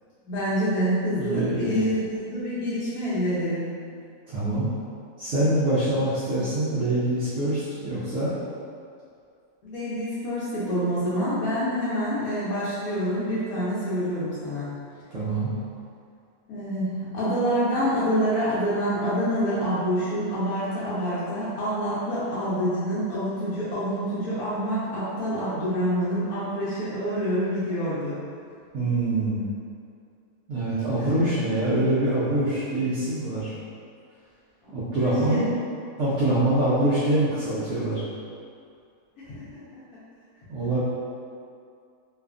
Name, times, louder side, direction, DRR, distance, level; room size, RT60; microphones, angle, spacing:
voice 1, 0.2-3.6 9.6-14.7 16.5-28.2 31.0-31.1 34.6-35.4 39.2-39.6, equal, 80° left, -10 dB, 1.1 m, -27 dB
voice 2, 1.1-1.8 4.3-4.7 5.2-8.3 15.1-15.5 28.7-29.4 30.5-33.5 34.7-35.4 36.0-38.0 40.5-40.8, right 1 dB, 65° right, -11 dB, 0.8 m, -24 dB
2.7 x 2.3 x 2.4 m, 2.3 s
omnidirectional pair, 1.6 m